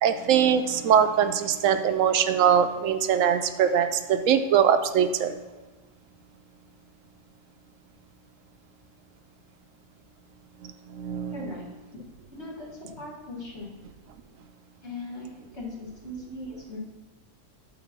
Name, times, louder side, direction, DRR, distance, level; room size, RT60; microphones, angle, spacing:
voice 1, 0.0-5.5 10.6-11.5, right 8 dB, 85° right, 9 dB, 1.0 m, -22 dB
voice 2, 11.3-11.7 12.3-13.7 14.8-16.8, left 2 dB, 60° left, -4 dB, 2.3 m, -39 dB
7.9 x 4.1 x 6.0 m, 1.2 s
omnidirectional pair, 1.3 m